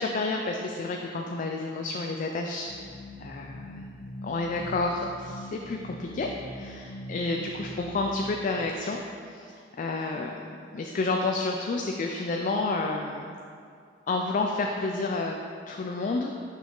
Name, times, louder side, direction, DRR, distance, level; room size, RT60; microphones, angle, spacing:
voice 1, 0.0-2.7 3.2-3.9 4.2-9.0 9.3-10.3 10.7-13.3 14.1-15.4 15.7-16.3, left 3 dB, 45° left, 2 dB, 0.4 m, -30 dB
sound 1, 2.7-8.7, equal, 80° left, 0.6 m, -42 dB
6.0 x 5.7 x 3.8 m, 2.3 s
head